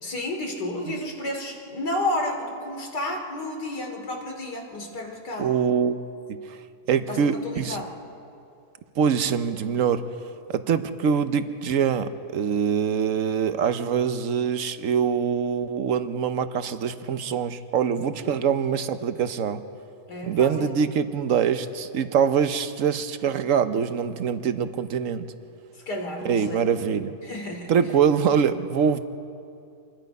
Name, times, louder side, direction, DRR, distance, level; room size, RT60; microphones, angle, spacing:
voice 1, 0.0-5.5 7.1-7.9 18.3-18.4 20.1-20.7 25.8-26.6 27.2-27.7, left 1 dB, 75° left, 2 dB, 3.3 m, -31 dB
voice 2, 5.4-6.0 6.3-6.6 6.9-7.8 9.0-10.0 10.5-19.6 20.2-25.2 26.2-27.1 27.7-29.0, right 7 dB, 55° right, 10 dB, 1.1 m, -24 dB
27.5 x 21.0 x 5.4 m, 2.5 s
omnidirectional pair, 1.8 m